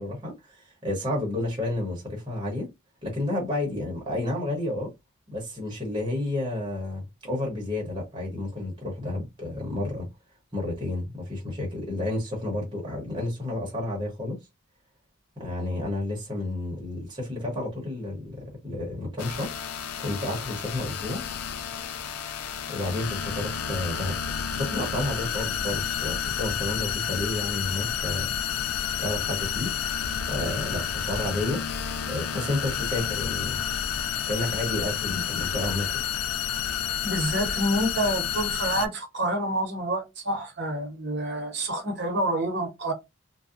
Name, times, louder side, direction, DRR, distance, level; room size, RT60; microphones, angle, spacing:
voice 1, 0.0-2.7 3.0-4.9 5.3-10.1 10.5-14.4 15.4-19.5 20.0-21.2 22.7-24.1 24.5-28.3 29.0-29.7 30.3-31.6 32.1-33.6 34.3-36.0, left 2 dB, 20° right, 0.9 m, -31 dB
sound 1, 19.2-38.9, left 8 dB, 90° left, 0.4 m, -30 dB
voice 2, 37.0-42.9, right 1 dB, 50° right, 0.8 m, -28 dB
2.6 x 2.1 x 2.4 m
head